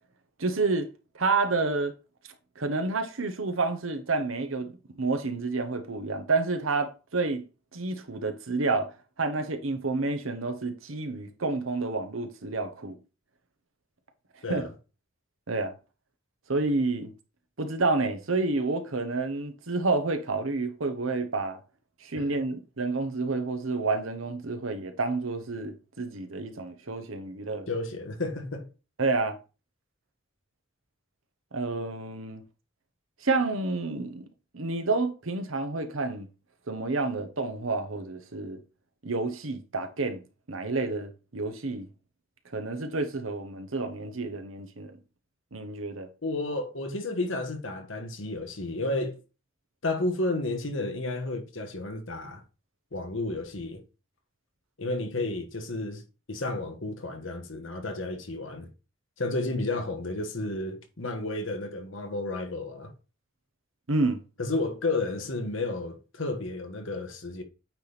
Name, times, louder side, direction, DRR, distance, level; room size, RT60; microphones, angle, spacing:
voice 1, 0.4-0.9 1.1-2.0 2.6-4.7 5.0-7.4 7.7-8.9 9.2-12.9 14.5-14.6 15.5-15.7 16.5-17.1 17.6-21.6 22.0-27.7 29.0-29.4 31.5-32.4 33.2-34.3 34.5-36.3 36.7-38.6 39.0-40.2 40.5-41.9 42.5-45.0 45.5-46.1 63.9-64.2, right 3 dB, 90° right, 1.1 m, -29 dB
voice 2, 27.7-28.7 46.2-49.2 49.8-52.4 52.9-53.8 54.8-56.0 56.3-58.7 59.2-62.9 64.4-67.4, left 2 dB, 75° left, 1.4 m, -32 dB
8.8 x 3.5 x 4.1 m
head